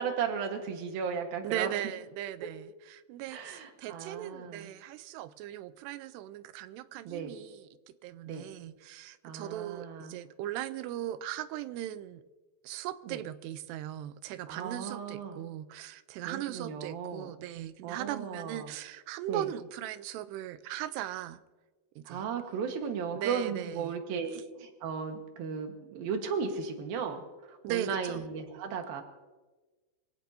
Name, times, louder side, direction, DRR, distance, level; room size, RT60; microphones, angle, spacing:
voice 1, 0.0-1.7 3.3-4.7 7.0-7.3 8.3-8.5 9.2-10.2 13.1-13.2 14.5-15.4 16.3-17.3 17.8-18.7 19.3-19.5 22.1-27.2 27.5-29.0, right 6 dB, 65° right, 4 dB, 3.1 m, -35 dB
voice 2, 1.4-7.7 8.0-12.2 12.6-21.4 22.0-22.3 23.1-23.9 27.6-28.3, right 12 dB, 90° right, 13 dB, 2.8 m, -38 dB
25.0 x 16.5 x 2.8 m, 1.2 s
omnidirectional pair, 4.7 m